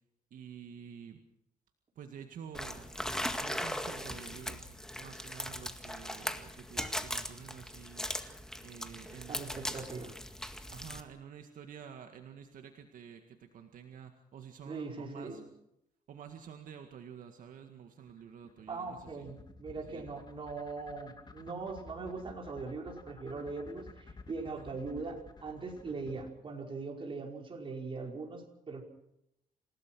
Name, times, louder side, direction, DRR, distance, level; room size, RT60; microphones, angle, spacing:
voice 1, 0.3-1.2 2.0-3.0 3.4-8.1 8.6-9.8 10.7-15.5 16.1-19.3 19.9-20.3 24.4-24.8, right 8 dB, 65° right, 5 dB, 1.9 m, -50 dB
sound 1, 2.5-11.0, left 1 dB, 5° left, 1.9 m, -39 dB
voice 2, 9.3-10.1 14.6-15.4 18.7-28.8, right 4 dB, 35° right, 1 dB, 5.2 m, -41 dB
sound 2, 18.1-26.3, left 3 dB, 30° left, 2.8 m, -52 dB
28.0 x 17.0 x 6.2 m, 0.81 s
cardioid pair, 115°, 15 cm